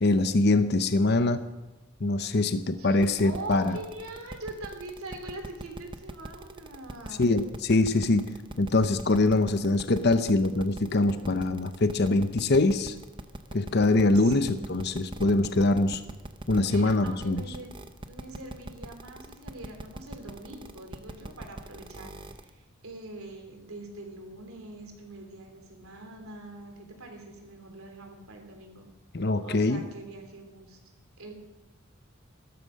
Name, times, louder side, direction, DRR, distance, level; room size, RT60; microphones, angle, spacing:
voice 1, 0.0-1.4 2.0-3.8 7.2-12.9 13.5-16.0 16.5-17.4 29.1-29.8, left 2 dB, 50° left, 10 dB, 0.8 m, -24 dB
voice 2, 2.8-7.4 14.2-15.1 16.5-17.8 18.1-28.9 29.4-30.8 31.2-31.3, right 2 dB, 90° right, 4 dB, 3.4 m, -43 dB
sound 1, 3.0-22.5, right 1 dB, 25° right, 0.8 m, -41 dB
14.5 x 13.0 x 6.5 m, 1.0 s
head